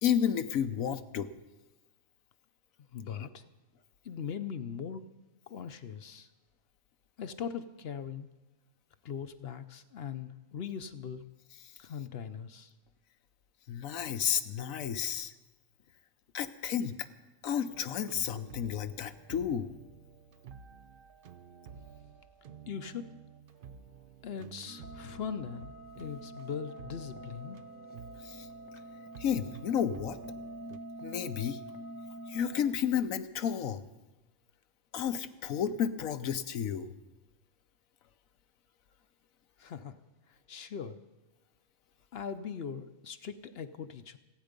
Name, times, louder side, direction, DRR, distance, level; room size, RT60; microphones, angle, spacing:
voice 1, 0.0-1.3 3.2-3.3 13.7-15.3 16.3-17.1 17.4-19.7 28.2-28.5 29.2-30.2 31.0-31.6 32.3-33.8 34.9-36.9, left 8 dB, 80° left, 11 dB, 1.2 m, -32 dB
voice 2, 2.9-3.4 4.0-5.0 5.5-6.3 7.2-8.3 9.0-11.2 11.8-12.7 22.7-23.1 24.2-27.6 39.6-40.0 40.3-41.0 42.1-44.2, left 7 dB, 55° left, 11 dB, 0.9 m, -40 dB
sound 1, 17.7-30.8, right 7 dB, 50° right, 0.7 m, -52 dB
sound 2, 24.7-32.7, right 1 dB, 10° left, 1.1 m, -46 dB
27.5 x 9.3 x 5.2 m, 1.1 s
omnidirectional pair, 1.4 m